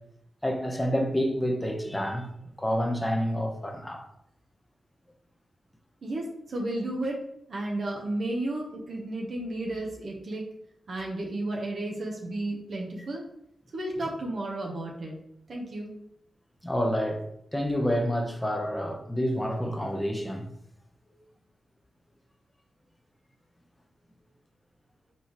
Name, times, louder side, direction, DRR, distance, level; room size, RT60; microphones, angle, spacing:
voice 1, 0.4-2.3 2.6-4.0 16.6-17.2 17.5-20.4, equal, 15° left, 0.9 m, -28 dB
voice 2, 6.0-7.2 7.5-10.4 10.9-13.2 13.7-15.1 15.5-15.9, right 1 dB, 65° right, 1.0 m, -33 dB
4.2 x 3.7 x 3.1 m
cardioid pair, 45°, 0 cm